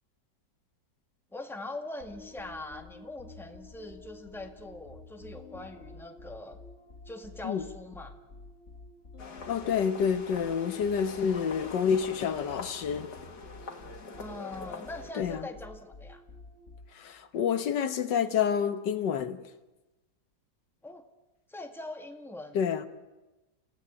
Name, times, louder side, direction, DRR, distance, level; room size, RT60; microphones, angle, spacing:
voice 1, 1.3-6.6 7.0-8.1 14.2-16.2 20.8-21.1 21.5-22.6, left 2 dB, ahead, 1.7 m, -42 dB
sound 1, 2.0-17.2, left 2 dB, 40° left, 2.0 m, -50 dB
sound 2, 9.2-15.1, left 4 dB, 65° left, 2.6 m, -44 dB
voice 2, 9.5-13.1 15.2-15.5 17.0-19.4 22.6-22.9, left 7 dB, 90° left, 1.9 m, -28 dB
28.5 x 16.0 x 10.0 m
omnidirectional pair, 1.8 m